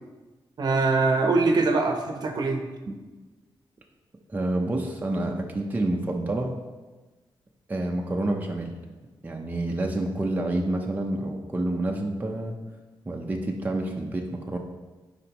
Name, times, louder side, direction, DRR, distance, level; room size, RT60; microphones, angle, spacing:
voice 1, 0.6-3.0, right 3 dB, 55° right, 4 dB, 0.8 m, -23 dB
voice 2, 4.3-6.6 7.7-8.8 9.2-12.6 13.0-14.6, right 1 dB, 20° right, 1 dB, 0.7 m, -28 dB
11.5 x 5.1 x 3.0 m, 1.2 s
wide cardioid pair, 150°, 9 cm